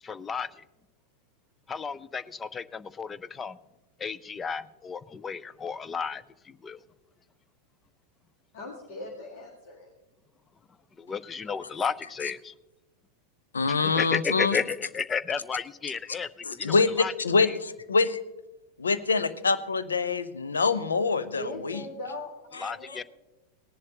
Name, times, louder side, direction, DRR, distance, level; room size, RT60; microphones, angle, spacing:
voice 1, 0.0-0.6 1.7-3.6 4.0-6.8 11.0-12.5 13.7-17.1 17.4-17.6 22.6-23.0, left 6 dB, 20° left, 17 dB, 0.4 m, -33 dB
voice 2, 8.5-9.9 21.4-23.0, left 2 dB, 55° left, -1 dB, 2.0 m, -40 dB
voice 3, 13.5-14.6 16.5-18.2 18.8-21.8 22.9-23.0, left 4 dB, 75° left, 12 dB, 0.7 m, -25 dB
18.5 x 11.0 x 2.9 m, 1.0 s
figure-of-eight pair, 90°, 0 cm